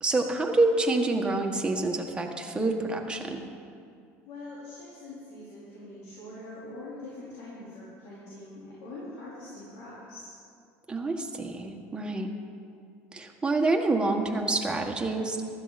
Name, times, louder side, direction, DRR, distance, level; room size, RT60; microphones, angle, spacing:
voice 1, 0.0-3.4 10.9-12.3 13.1-15.4, right 2 dB, 15° right, 2 dB, 1.5 m, -27 dB
voice 2, 4.2-10.3, left 2 dB, 80° left, -8 dB, 4.1 m, -43 dB
15.5 x 13.0 x 4.2 m, 2.4 s
supercardioid pair, 105°, 7 cm